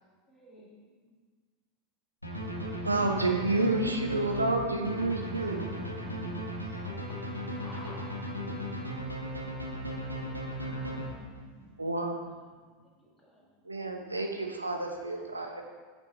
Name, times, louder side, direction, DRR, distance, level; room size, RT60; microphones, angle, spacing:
voice 1, 0.3-0.7 7.1-7.2 7.5-8.1 10.3-11.1 12.1-12.2 12.4-12.5 13.0-13.4 15.2-15.6, left 1 dB, 5° left, -5 dB, 1.7 m, -53 dB
sound 1, 2.2-11.5, equal, 90° left, 0.7 m, -36 dB
voice 2, 2.8-5.7 11.8-12.3 13.7-15.6, right 2 dB, 85° right, 3 dB, 0.5 m, -29 dB
voice 3, 3.4-6.3 10.5-11.7 12.4-12.5, left 1 dB, 60° left, -1 dB, 1.2 m, -47 dB
6.5 x 6.1 x 2.9 m, 1.5 s
figure-of-eight pair, 85°, 0 cm